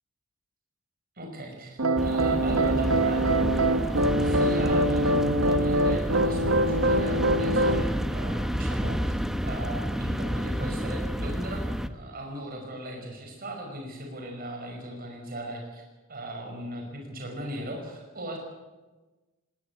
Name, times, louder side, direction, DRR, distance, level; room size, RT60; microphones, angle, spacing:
voice 1, 1.2-9.1 9.4-15.8 16.1-18.4, right 1 dB, 45° right, 2 dB, 5.4 m, -37 dB
sound 1, 1.8-7.8, right 1 dB, 70° right, 1.2 m, -24 dB
sound 2, 2.0-11.9, equal, ahead, 1.0 m, -30 dB
20.0 x 18.5 x 8.3 m, 1.2 s
head